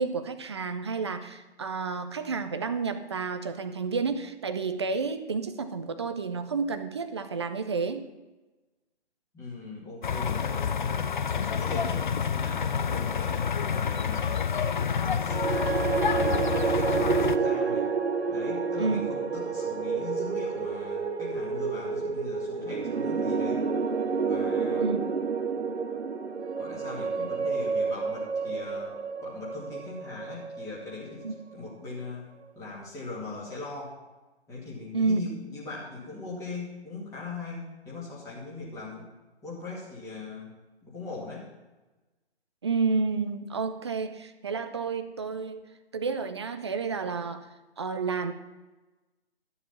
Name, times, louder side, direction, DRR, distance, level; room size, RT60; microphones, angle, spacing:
voice 1, 0.0-8.1 18.8-19.0 24.8-25.0 31.2-31.3 34.9-35.2 42.6-45.6 45.9-47.5 47.8-48.3, right 4 dB, 25° right, 9 dB, 0.5 m, -30 dB
voice 2, 9.3-13.4 13.7-14.4 15.0-17.9 18.3-23.6 24.2-24.9 26.6-31.2 31.5-32.3 32.5-34.0 34.5-39.1 39.4-40.5 40.8-41.5, left 3 dB, 10° left, -6 dB, 2.4 m, -40 dB
sound 1, 10.0-17.4, left 7 dB, 45° left, 0.5 m, -28 dB
sound 2, 15.2-31.5, right 5 dB, 75° right, 0.9 m, -29 dB
13.0 x 7.0 x 5.8 m, 1.1 s
figure-of-eight pair, 140°, 33 cm